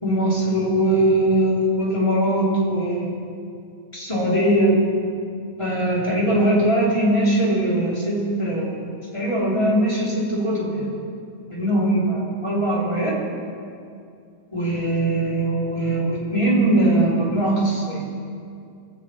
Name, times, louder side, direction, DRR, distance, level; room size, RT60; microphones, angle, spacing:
voice 1, 0.0-3.1 3.9-4.8 5.6-8.8 9.1-10.9 11.5-13.2 14.5-18.0, right 1 dB, 15° left, -6 dB, 3.8 m, -21 dB
21.5 x 7.7 x 8.4 m, 2.4 s
omnidirectional pair, 1.8 m